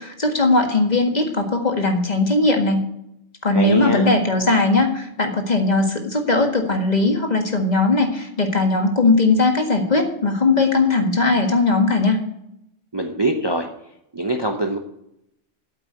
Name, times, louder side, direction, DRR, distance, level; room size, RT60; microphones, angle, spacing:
voice 1, 0.0-2.8 3.4-12.2, left 3 dB, 35° left, 3 dB, 1.8 m, -19 dB
voice 2, 3.5-4.1 12.9-13.7 14.1-14.8, right 1 dB, 25° right, 4 dB, 0.9 m, -23 dB
8.4 x 8.3 x 8.6 m, 0.79 s
omnidirectional pair, 1.2 m